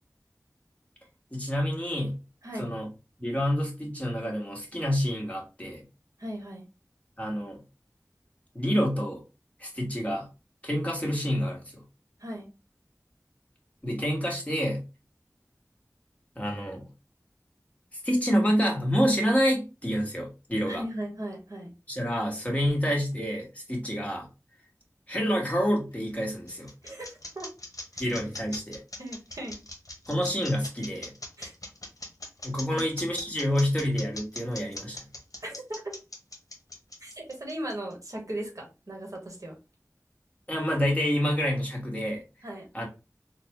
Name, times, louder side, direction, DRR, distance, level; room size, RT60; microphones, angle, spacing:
voice 1, 1.3-2.2 2.6-2.9 3.2-5.8 7.2-7.6 8.5-9.2 9.6-10.3 10.6-11.8 13.8-14.8 16.3-16.8 18.0-20.8 21.9-24.3 25.1-26.7 28.0-28.8 30.1-31.1 32.4-35.0 40.5-42.2 42.7-42.9, equal, 25° left, -1 dB, 1.4 m, -28 dB
voice 2, 6.2-6.6 12.2-12.5 20.6-21.7 26.8-27.5 27.9-28.1 29.0-29.6 31.4-31.5 32.7-32.8 35.4-35.9 37.0-39.5 42.4-42.7, right 1 dB, 75° right, 0 dB, 1.2 m, -37 dB
sound 1, 25.9-37.9, left 2 dB, 85° left, 0.8 m, -40 dB
3.8 x 2.3 x 2.9 m, 0.28 s
wide cardioid pair, 40°, 6 cm